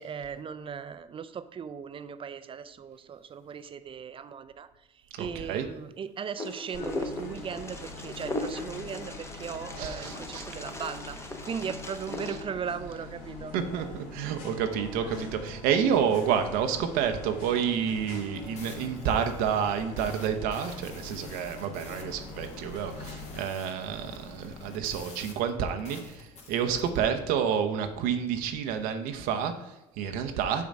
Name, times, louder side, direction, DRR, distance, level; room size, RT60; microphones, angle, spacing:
voice 1, 0.0-13.6, right 7 dB, 35° right, 12 dB, 0.6 m, -38 dB
voice 2, 5.2-5.7 9.8-10.5 13.5-30.7, right 8 dB, 80° right, 6 dB, 0.8 m, -29 dB
Wind, 6.4-12.4, left 2 dB, 15° left, 1.0 m, -38 dB
sound 1, 6.7-23.4, left 3 dB, 80° left, 2.6 m, -44 dB
sound 2, 18.0-27.0, left 3 dB, 50° left, 1.9 m, -48 dB
6.9 x 3.8 x 6.5 m, 1.0 s
supercardioid pair, 85°, 15 cm